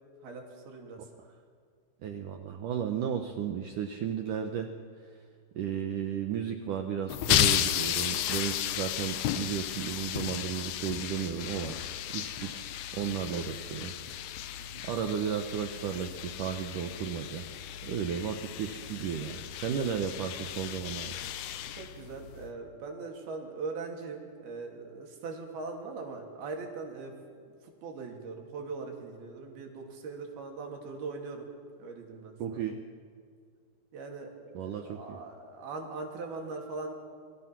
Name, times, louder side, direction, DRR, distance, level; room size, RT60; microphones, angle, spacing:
voice 1, 0.2-1.0 12.5-12.6 13.3-13.5 14.6-14.8 21.8-27.1 27.8-31.5 31.8-32.6 33.9-36.9, right 4 dB, 55° right, 1 dB, 4.6 m, -41 dB
voice 2, 2.0-4.7 5.6-11.8 12.1-12.7 12.9-13.9 14.8-17.5 17.8-21.1 32.4-32.8 34.5-35.2, right 8 dB, 85° right, 5 dB, 1.8 m, -34 dB
sound 1, 7.1-22.5, left 12 dB, 75° left, 2.5 m, -34 dB
28.0 x 23.5 x 6.1 m, 2.1 s
omnidirectional pair, 5.4 m